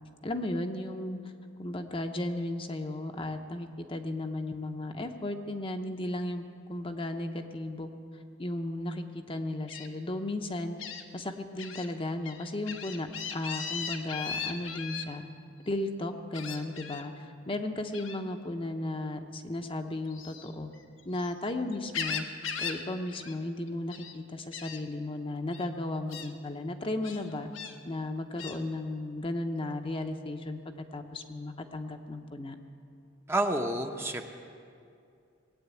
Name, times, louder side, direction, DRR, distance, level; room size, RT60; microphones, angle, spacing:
voice 1, 0.2-1.2 1.6-7.9 8.4-10.8 11.1-15.2 15.7-20.7 21.1-22.2 22.6-27.5 27.8-32.6, left 1 dB, 25° left, 5 dB, 0.8 m, -35 dB
Gull seagull, 9.7-9.9 10.8-11.0 11.6-11.9 12.2-15.0 16.3-17.0 17.9-18.2 20.1-21.3 21.7-22.8 23.1-23.4 23.7-24.1 24.5-24.8 25.5-25.7 26.1-26.3 27.0-27.7 28.4-28.6, left 6 dB, 75° left, 1.1 m, -38 dB
voice 2, 33.3-34.3, right 1 dB, 10° right, 4 dB, 0.8 m, -29 dB
19.5 x 8.8 x 8.3 m, 2.4 s
head